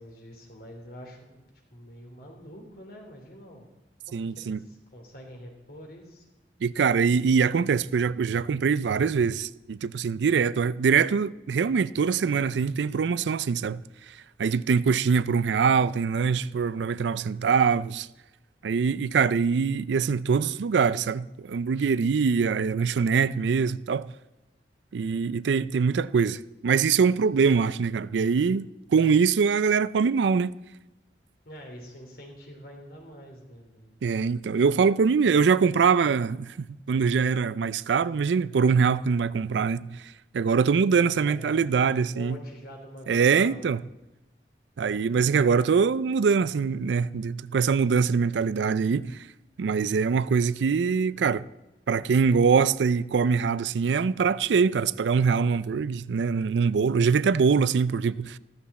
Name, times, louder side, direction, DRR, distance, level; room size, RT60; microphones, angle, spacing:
voice 1, 0.0-1.4 1.7-3.7 4.1-6.2 31.4-33.9 41.0-43.6, equal, 60° left, 3.2 m, -46 dB
voice 2, 4.1-4.6 6.6-13.8 14.4-18.1 18.6-24.1 24.9-30.5 34.0-40.0 40.3-42.4 43.1-43.8 44.8-49.2 49.6-51.4 51.9-58.4, right 5 dB, 85° right, 0.4 m, -23 dB
14.0 x 14.0 x 4.2 m
head